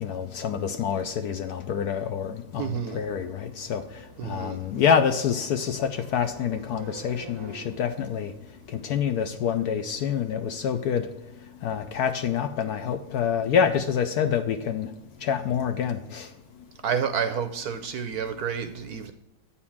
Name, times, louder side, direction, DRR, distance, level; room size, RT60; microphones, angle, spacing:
voice 1, 0.0-3.8 4.2-8.3 8.7-11.1 11.6-14.9 15.2-16.3, left 7 dB, 70° left, 0.9 m, -27 dB
voice 2, 2.6-3.0 4.2-4.6 6.7-7.7 16.8-19.1, right 7 dB, 70° right, 0.9 m, -30 dB
8.8 x 4.3 x 7.0 m
omnidirectional pair, 2.0 m